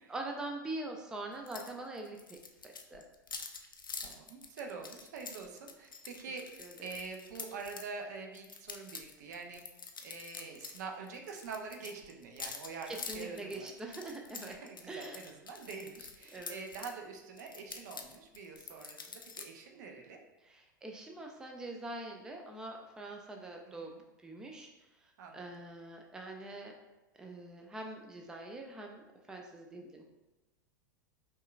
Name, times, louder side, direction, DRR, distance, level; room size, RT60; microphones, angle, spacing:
voice 1, 0.1-2.4 2.6-3.0 6.6-6.7 12.9-14.6 14.9-15.2 16.3-16.6 20.4-23.9 24.2-24.7 25.0-26.7 27.2-29.0 29.3-30.0, right 2 dB, 5° right, 2 dB, 0.3 m, -43 dB
sound 1, 1.5-1.7 2.0-7.9 8.3-10.8 11.1-16.9 17.4-19.5, left 5 dB, 85° left, 0.4 m, -46 dB
voice 2, 4.0-6.5 6.8-9.6 10.0-13.7 14.5-20.2 23.8-24.0 25.2-25.5, right 4 dB, 55° right, 3 dB, 0.6 m, -45 dB
5.4 x 2.3 x 2.4 m, 1.0 s
figure-of-eight pair, 90°, 11 cm